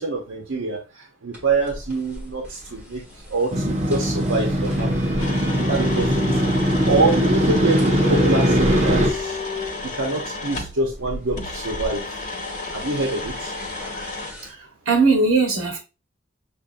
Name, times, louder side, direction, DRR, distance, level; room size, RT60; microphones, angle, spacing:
voice 1, 0.0-3.0 3.3-4.9 5.7-6.3 6.8-9.4 10.0-12.0 12.7-13.5, right 3 dB, 85° right, 0.9 m, -25 dB
sound 1, 1.3-14.5, left 2 dB, 10° right, 1.6 m, -36 dB
Motorcycle, 3.5-9.1, equal, 35° right, 0.9 m, -20 dB
sound 2, 5.2-10.8 11.4-14.3, left 3 dB, 40° left, 1.2 m, -33 dB
voice 2, 14.5-15.8, right 3 dB, 70° right, 1.3 m, -19 dB
6.7 x 2.6 x 2.5 m
head